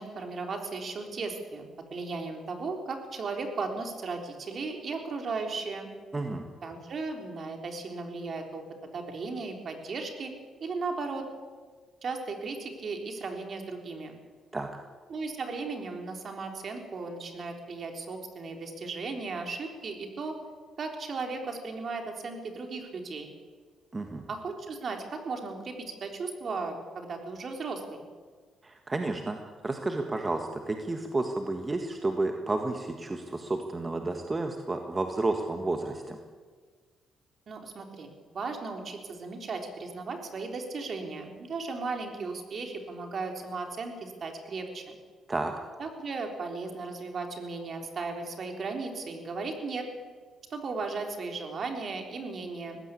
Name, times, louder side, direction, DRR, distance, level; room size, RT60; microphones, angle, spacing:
voice 1, 0.0-5.9 6.6-8.6 8.9-10.3 10.6-11.2 12.0-14.1 15.1-20.4 20.8-23.3 24.3-28.0 37.5-38.1 38.3-45.0 45.8-49.9 50.5-52.8, right 4 dB, 50° right, 4 dB, 3.8 m, -36 dB
voice 2, 6.1-6.5 14.5-14.7 23.9-24.2 28.6-29.4 29.6-36.2 45.3-45.5, right 2 dB, 25° right, 4 dB, 1.7 m, -31 dB
19.5 x 16.0 x 8.5 m, 1.5 s
cardioid pair, 90°, 0 cm